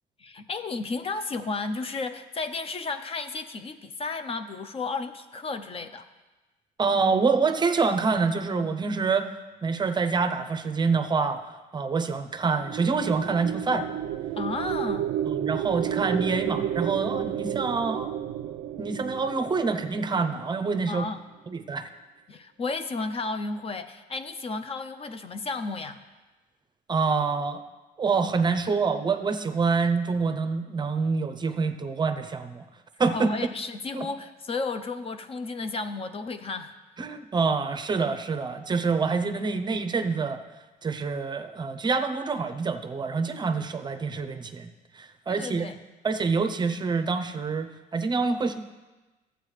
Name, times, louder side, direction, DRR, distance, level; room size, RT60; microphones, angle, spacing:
voice 1, 0.2-6.1 14.4-15.1 20.9-21.2 22.3-26.0 33.1-36.8 45.3-45.8, left 3 dB, 35° left, 9 dB, 0.6 m, -33 dB
voice 2, 6.8-9.3 9.6-11.4 11.7-13.9 15.3-18.1 18.8-21.0 21.5-21.9 26.9-27.6 28.0-32.6 33.0-33.3 33.9-34.0 37.0-40.4 40.8-44.7 44.9-45.7 46.0-48.6, right 4 dB, 25° right, 9 dB, 0.6 m, -26 dB
sound 1, 12.5-20.9, right 10 dB, 70° right, 0.4 m, -32 dB
13.0 x 8.0 x 3.2 m, 1.2 s
cardioid pair, 110°, 17 cm